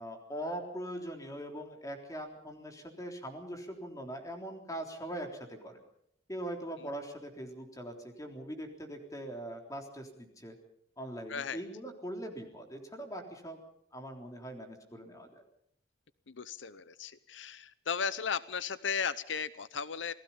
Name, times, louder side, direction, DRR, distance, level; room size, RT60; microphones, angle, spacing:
voice 1, 0.0-5.8 6.3-10.6 11.0-13.6 13.9-15.4, right 1 dB, 20° left, 3 dB, 3.6 m, -41 dB
voice 2, 16.4-20.1, left 6 dB, 80° left, 16 dB, 0.7 m, -35 dB
28.0 x 19.0 x 5.6 m, 0.72 s
head